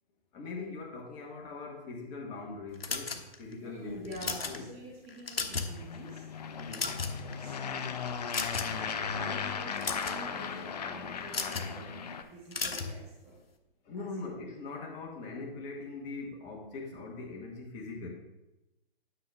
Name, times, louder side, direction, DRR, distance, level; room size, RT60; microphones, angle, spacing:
voice 1, 0.3-4.7 6.6-6.9 11.6-11.7 13.9-18.1, left 3 dB, 20° left, 0 dB, 1.4 m, -41 dB
sound 1, 2.8-3.5 4.0-4.6 5.1-5.8 6.1-6.2 6.6-7.3 8.3-8.8 9.6-10.2 11.3-11.7 12.5-12.9, left 4 dB, 70° left, 1.1 m, -34 dB
voice 2, 3.6-6.3 7.4-8.4 9.0-12.0 12.3-13.4 14.0-14.1, right 1 dB, 20° right, -3 dB, 2.0 m, -48 dB
sound 2, 5.7-12.2, left 6 dB, 40° left, 0.7 m, -36 dB
9.5 x 5.7 x 3.5 m, 0.97 s
figure-of-eight pair, 130°, 30 cm